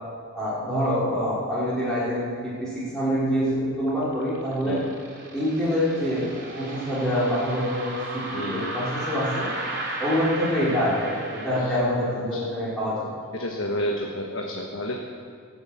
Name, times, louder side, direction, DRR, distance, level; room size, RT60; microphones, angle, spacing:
voice 1, 0.3-4.8 5.3-9.5 10.0-13.1, equal, 5° left, -10 dB, 3.3 m, -26 dB
sound 1, 3.9-11.6, right 2 dB, 50° right, 3.4 m, -35 dB
voice 2, 8.3-8.7 11.6-11.8 12.3-12.4 13.3-15.0, left 1 dB, 60° left, 0 dB, 1.4 m, -30 dB
17.0 x 8.0 x 8.5 m, 2.2 s
head